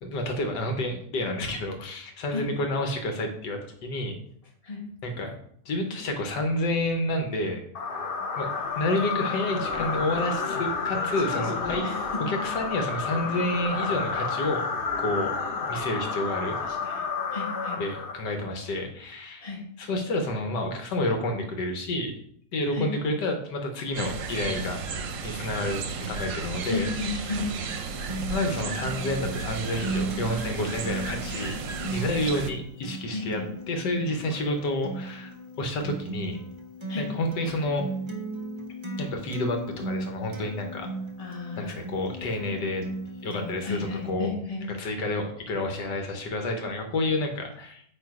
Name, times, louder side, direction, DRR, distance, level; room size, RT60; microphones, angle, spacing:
voice 1, 0.0-4.2 5.0-5.4 5.6-7.6 8.4-8.5 8.7-11.9 12.2-14.6 15.0-15.3 15.7-16.6 17.8-19.4 19.8-22.1 22.5-24.8 25.2-26.9 28.3-31.6 31.9-33.4 33.7-36.4 37.0-37.9 39.0-40.9 41.6-42.8 43.2-44.3 44.6-47.8, left 1 dB, 90° left, 4 dB, 1.7 m, -29 dB
sound 1, 7.7-18.5, left 4 dB, 55° left, 0.6 m, -30 dB
voice 2, 11.2-12.2 16.7-17.0 17.3-17.8 19.4-19.6 22.7-22.9 26.6-27.5 31.9-32.0 33.1-33.5 36.9-37.1 41.2-41.8 43.3-44.7, left 4 dB, 20° left, -2 dB, 1.5 m, -34 dB
sound 2, 23.9-32.5, right 5 dB, 60° right, 0.9 m, -34 dB
Acoustic guitar, 28.1-44.1, right 2 dB, 35° right, 0.4 m, -37 dB
8.7 x 2.9 x 4.8 m, 0.67 s
omnidirectional pair, 1.8 m